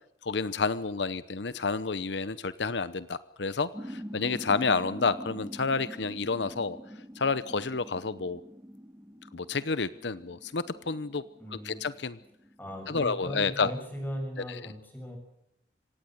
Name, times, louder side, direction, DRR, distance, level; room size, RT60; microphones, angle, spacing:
voice 1, 0.2-6.8 7.2-8.4 9.3-11.2 11.5-12.2 12.9-13.7 14.5-14.6, left 4 dB, 80° left, 15 dB, 0.9 m, -30 dB
sound 1, 3.7-13.0, equal, 15° right, 1.5 m, -45 dB
voice 2, 11.4-11.8 12.6-15.2, equal, 10° left, 3 dB, 7.2 m, -38 dB
26.0 x 17.5 x 8.0 m, 0.82 s
head